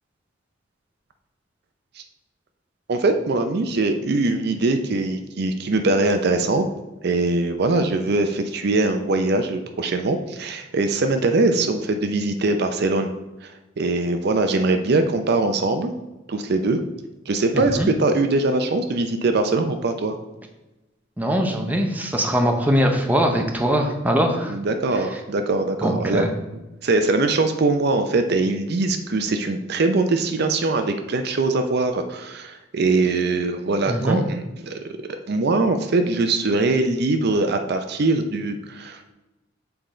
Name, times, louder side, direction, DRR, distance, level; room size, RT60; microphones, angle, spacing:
voice 1, 2.9-6.7 7.0-13.1 13.4-13.5 13.8-15.9 16.3-16.8 17.3-20.2 24.5-26.3 26.8-35.0 35.3-39.1, right 2 dB, 55° right, 7 dB, 0.5 m, -22 dB
voice 2, 17.5-17.9 21.2-24.6 25.8-26.3 33.9-34.2, equal, 10° right, 3 dB, 0.6 m, -21 dB
6.9 x 3.8 x 4.2 m, 1.0 s
head